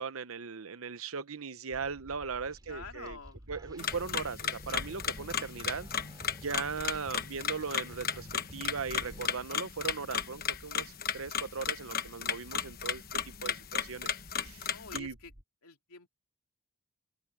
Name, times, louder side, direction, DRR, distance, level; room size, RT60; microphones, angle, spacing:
voice 1, 0.0-3.2 3.5-5.9 6.4-14.1 14.4-15.2, right 5 dB, 75° right, 0.9 m, -38 dB
sound 1, 1.7-15.4, equal, 50° right, 3.2 m, -53 dB
sound 2, 2.5-2.8 3.1-9.3, right 1 dB, 20° right, 4.3 m, -54 dB
voice 2, 2.6-3.4 14.6-15.3 15.6-16.1, left 4 dB, 85° left, 3.4 m, -47 dB
sound 3, 3.8-15.0, left 7 dB, 45° left, 1.2 m, -35 dB
head